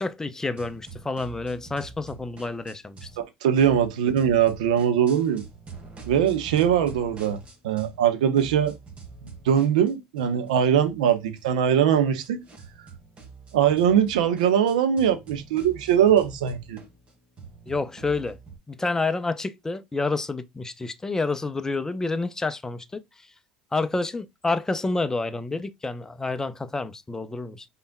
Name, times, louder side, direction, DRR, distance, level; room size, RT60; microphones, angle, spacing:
voice 1, 0.0-3.1 17.7-18.4 18.7-23.3 23.7-27.7, left 3 dB, 15° left, 0.6 m, -29 dB
sound 1, 0.6-3.2 3.5-8.1 8.4-18.6, right 4 dB, 30° right, 1.9 m, -45 dB
voice 2, 3.4-5.4 6.1-7.4 7.6-8.7 9.2-12.4 13.5-16.8, right 9 dB, 80° right, 0.9 m, -21 dB
5.3 x 4.2 x 2.2 m
hypercardioid pair, 75°, 4 cm